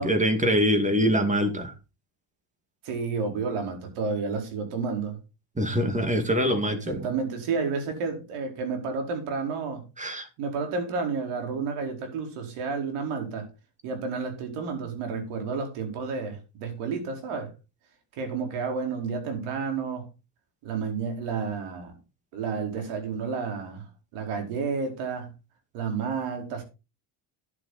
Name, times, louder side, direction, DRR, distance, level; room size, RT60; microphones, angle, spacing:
voice 1, 0.0-1.7 5.6-7.1 10.0-10.3, equal, 15° right, 2.2 m, -24 dB
voice 2, 2.8-5.2 6.8-9.8 10.4-13.5 13.8-17.5 18.2-20.1 20.6-21.9 22.3-25.3 25.7-26.6, right 5 dB, 85° right, 4.7 m, -31 dB
11.0 x 9.8 x 4.2 m
cardioid pair, 130°, 49 cm